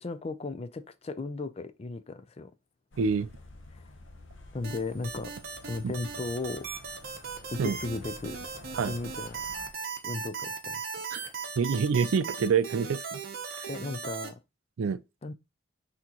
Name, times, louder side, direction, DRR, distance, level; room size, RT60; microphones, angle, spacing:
voice 1, 0.0-2.5 3.7-3.9 4.5-5.3 5.6-6.7 7.5-8.4 8.9-9.4 9.7-10.8 11.2-11.8 13.7-14.3 15.2-15.3, left 3 dB, 30° left, 0.4 m, -36 dB
sound 1, 2.9-9.7, left 2 dB, 65° left, 0.8 m, -50 dB
voice 2, 3.0-3.3 5.8-5.9 7.6-7.8 8.8-9.0 11.1-11.2 11.6-13.2 13.5-13.7 14.8-15.0, right 5 dB, 85° right, 0.4 m, -27 dB
sound 2, 4.6-14.3, right 5 dB, 50° right, 0.8 m, -38 dB
6.0 x 2.9 x 2.9 m
head